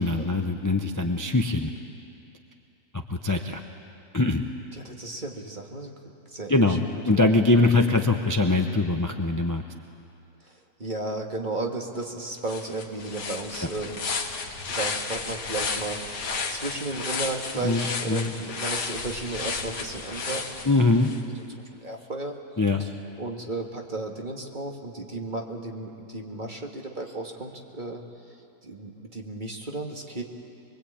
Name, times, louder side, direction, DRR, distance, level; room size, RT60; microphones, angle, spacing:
voice 1, 0.0-1.7 3.1-3.6 4.1-4.4 6.5-9.6 17.6-18.3 20.6-21.1 22.6-22.8, left 2 dB, 20° left, 4 dB, 0.6 m, -22 dB
voice 2, 4.7-6.0 6.3-6.8 7.2-7.7 10.4-14.1 14.8-20.7 21.4-21.5 21.7-22.3 22.8-22.9 23.2-28.0 28.6-30.2, right 2 dB, 30° right, 1 dB, 2.0 m, -34 dB
sound 1, 12.0-12.1 12.4-21.2, left 4 dB, 75° left, 2.2 m, -33 dB
23.5 x 23.0 x 8.7 m, 2.7 s
omnidirectional pair, 1.8 m